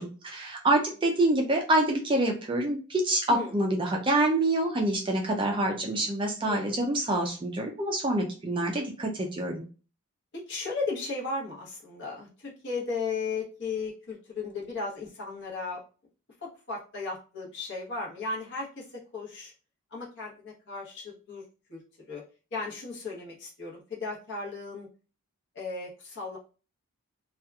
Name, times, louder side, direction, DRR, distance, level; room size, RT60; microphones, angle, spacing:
voice 1, 0.0-9.6, right 1 dB, 20° right, 2 dB, 0.4 m, -26 dB
voice 2, 6.4-6.8 10.3-15.8 16.4-19.5 19.9-21.4 21.7-21.8 22.1-22.2 22.5-24.9 25.5-26.4, left 4 dB, 50° left, -3 dB, 1.0 m, -35 dB
2.8 x 2.4 x 2.2 m, 0.35 s
head